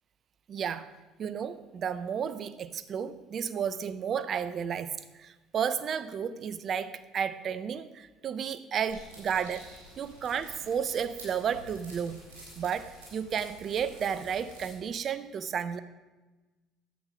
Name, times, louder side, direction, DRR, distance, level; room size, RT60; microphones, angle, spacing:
voice 1, 0.5-0.9 1.2-9.7 10.0-12.2 12.6-15.8, right 7 dB, 50° right, 14 dB, 0.6 m, -32 dB
sound 1, 8.9-14.7, right 1 dB, 80° right, 3.8 m, -50 dB
10.0 x 8.2 x 5.1 m, 1.2 s
hypercardioid pair, 60°, 0 cm